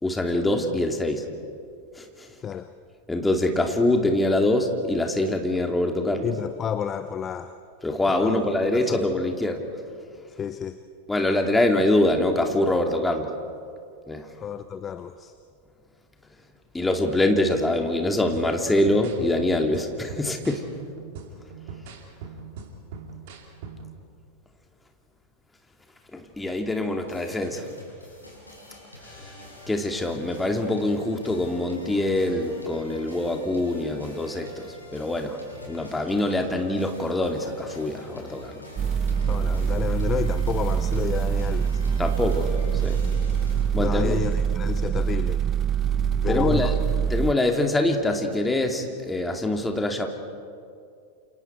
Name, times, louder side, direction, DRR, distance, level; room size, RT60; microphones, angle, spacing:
voice 1, 0.0-1.2 2.0-2.3 3.1-6.3 7.8-9.6 11.1-13.3 14.1-14.3 16.7-20.7 26.1-27.7 29.7-35.4 35.7-38.6 42.0-42.5 42.8-43.0 43.7-44.2 46.3-46.7 47.1-50.1, left 1 dB, 10° left, 3 dB, 2.5 m, -24 dB
voice 2, 6.2-7.6 8.1-8.4 8.7-9.0 10.4-10.8 14.4-15.3 39.3-41.8 43.8-45.4 46.2-46.8, left 8 dB, 25° left, 12 dB, 0.7 m, -30 dB
sound 1, 18.3-24.0, right 5 dB, 50° right, 2.9 m, -41 dB
sound 2, 27.1-43.7, left 1 dB, 85° left, 6.1 m, -45 dB
sound 3, 38.8-47.3, right 7 dB, 25° right, 0.5 m, -24 dB
28.5 x 28.5 x 4.5 m, 2.4 s
figure-of-eight pair, 90°, 0 cm